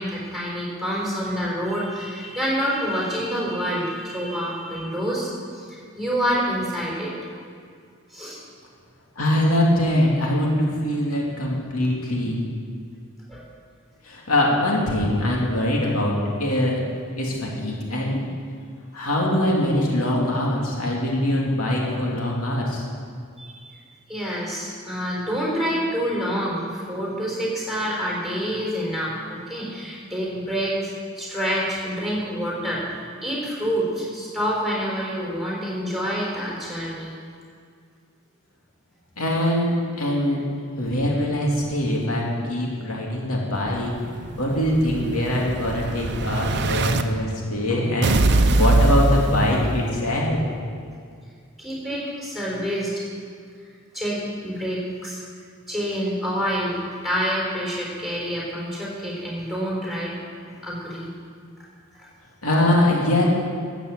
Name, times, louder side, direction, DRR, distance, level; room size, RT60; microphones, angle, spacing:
voice 1, 0.0-7.1 8.1-8.4 13.3-13.5 23.4-23.8 24.1-37.1 51.6-53.0 53.9-55.2 55.7-56.8 57.0-60.1 60.4-61.1, equal, ahead, -4 dB, 4.5 m, -27 dB
voice 2, 9.2-12.5 14.0-16.8 17.2-18.2 18.9-22.9 39.2-40.4 40.8-43.9 44.4-50.4 62.4-63.3, left 1 dB, 80° left, -3 dB, 2.7 m, -23 dB
Explosion, 43.7-47.0 48.0-50.0, right 2 dB, 55° right, 0.7 m, -22 dB
13.0 x 8.1 x 8.2 m, 2.2 s
head